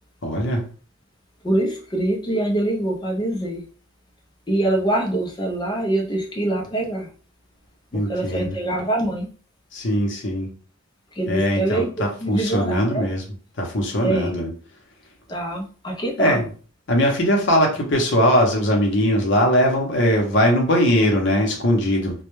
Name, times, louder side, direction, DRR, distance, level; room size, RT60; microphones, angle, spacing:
voice 1, 0.2-0.6 7.9-8.6 9.7-10.5 11.3-13.2 13.6-14.5 16.2-16.4 16.9-22.1, equal, 55° left, 1 dB, 0.7 m, -20 dB
voice 2, 1.4-3.6 4.5-7.1 7.9-9.3 11.1-11.9 12.2-13.1 14.0-14.3 15.3-16.4, right 1 dB, 20° left, 0 dB, 0.5 m, -24 dB
2.2 x 2.1 x 3.0 m, 0.40 s
head